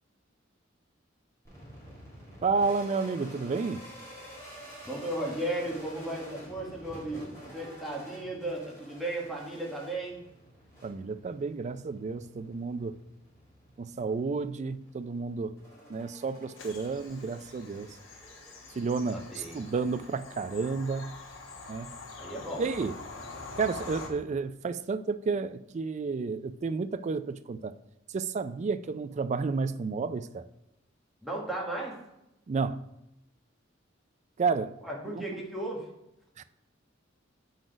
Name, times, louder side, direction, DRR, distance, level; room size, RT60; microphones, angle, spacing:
sound 1, 1.4-20.6, equal, 15° left, 2.8 m, -50 dB
voice 1, 2.4-3.8 10.8-13.0 13.8-15.5 15.9-17.9 18.8-21.2 21.7-21.9 22.6-23.0 23.6-27.7 28.1-30.5 32.5-32.8 34.4-34.8 35.1-35.2 36.4-36.5, right 4 dB, 35° right, 0.3 m, -31 dB
voice 2, 4.8-10.2 19.3-19.6 22.2-22.7 31.2-32.0 34.8-35.9, right 1 dB, ahead, 1.4 m, -35 dB
Bird vocalization bird call bird song / Train, 16.6-24.1, left 3 dB, 75° left, 1.1 m, -45 dB
7.6 x 4.0 x 5.1 m
head